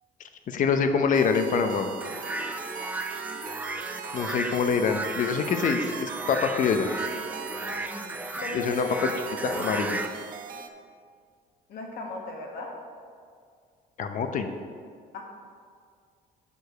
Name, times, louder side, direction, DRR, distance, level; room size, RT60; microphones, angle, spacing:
voice 1, 0.5-1.9 4.1-6.9 8.5-9.1 9.4-10.0 14.0-14.5, left 6 dB, 50° left, 7 dB, 0.7 m, -25 dB
sound 1, 1.1-10.7, right 7 dB, 55° right, 0.6 m, -40 dB
sound 2, 2.0-10.1, right 2 dB, 10° right, 0.5 m, -34 dB
voice 2, 7.5-9.1 11.7-12.7 15.1-15.2, left 2 dB, 70° left, 0 dB, 1.5 m, -38 dB
6.9 x 4.8 x 6.6 m, 2.1 s
cardioid pair, 110°, 17 cm